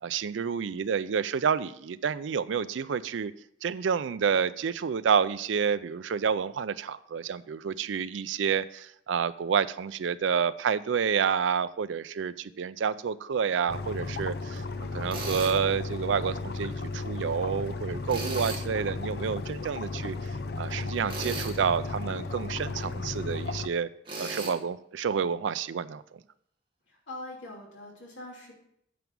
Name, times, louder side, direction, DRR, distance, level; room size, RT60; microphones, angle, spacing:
voice 1, 0.0-3.3 3.6-14.6 14.9-20.1 20.6-23.9 24.2-26.0, right 6 dB, 85° right, 14 dB, 0.4 m, -29 dB
sound 1, 13.7-23.7, left 3 dB, 55° left, 0.5 m, -34 dB
Tools, 15.1-15.6 18.1-18.7 21.1-21.6 24.1-24.5, right 3 dB, 25° right, 1.6 m, -36 dB
voice 2, 26.9-28.5, left 2 dB, 85° left, -2 dB, 2.8 m, -43 dB
9.3 x 6.0 x 5.3 m, 0.70 s
head